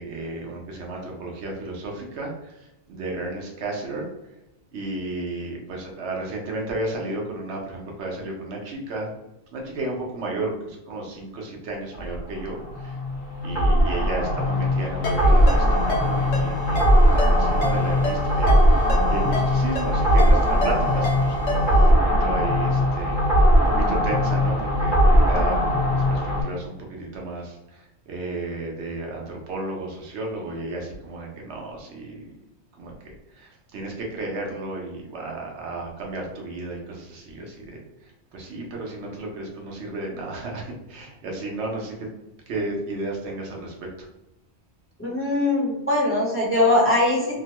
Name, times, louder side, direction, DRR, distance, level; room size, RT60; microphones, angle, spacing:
voice 1, 0.0-2.6 2.9-4.1 4.7-9.1 9.5-13.0 13.4-32.3 32.8-32.9 33.3-37.8 38.3-42.1 42.5-44.1, right 2 dB, 80° right, 0 dB, 1.0 m, -33 dB
sound 1, 11.9-26.4, equal, 50° left, 1.1 m, -20 dB
Ringtone, 15.0-21.9, equal, 90° left, 1.1 m, -32 dB
voice 2, 45.0-47.4, left 1 dB, 15° left, -6 dB, 0.8 m, -21 dB
2.9 x 2.1 x 2.9 m, 0.93 s
omnidirectional pair, 1.1 m